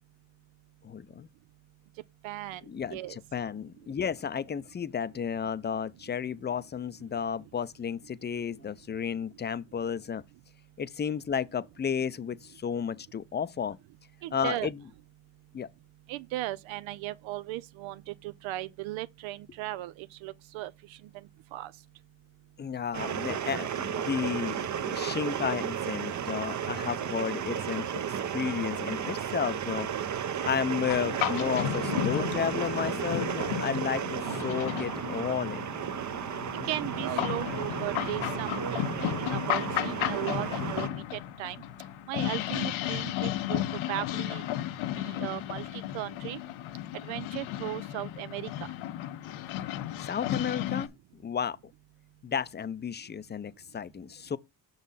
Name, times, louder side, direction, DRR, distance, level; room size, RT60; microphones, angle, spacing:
voice 1, 0.8-1.3 2.7-10.2 10.8-13.8 14.3-14.8 15.5-15.7 22.6-29.9 30.4-35.7 50.0-51.6 52.2-54.4, left 7 dB, 25° left, 0.5 m, -32 dB
voice 2, 2.2-2.6 2.9-3.2 14.2-14.7 16.1-21.0 21.5-21.7 36.6-41.6 42.1-43.6 43.9-44.4 45.0-46.4 47.0-48.5, right 16 dB, 80° right, 0.6 m, -37 dB
sound 1, 22.9-40.9, right 8 dB, 40° right, 0.7 m, -33 dB
sound 2, 30.9-50.9, left 13 dB, 80° left, 0.9 m, -34 dB
6.2 x 3.9 x 5.5 m
cardioid pair, 85°, 47 cm